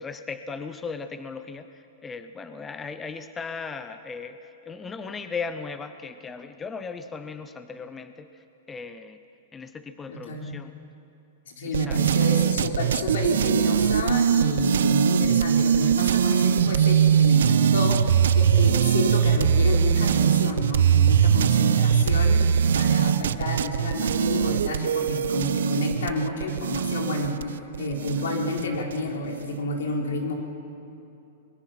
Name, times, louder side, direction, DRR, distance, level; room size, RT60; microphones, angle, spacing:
voice 1, 0.0-9.2 9.5-10.9 11.6-12.0 12.4-12.7 21.4-21.7, left 5 dB, 10° left, 10 dB, 0.6 m, -37 dB
voice 2, 10.1-10.5 11.5-30.3, left 2 dB, 85° left, 1 dB, 4.2 m, -30 dB
sound 1, 11.7-29.0, right 8 dB, 85° right, 0.6 m, -21 dB
24.5 x 21.0 x 5.8 m, 2.8 s
supercardioid pair, 165°, 0 cm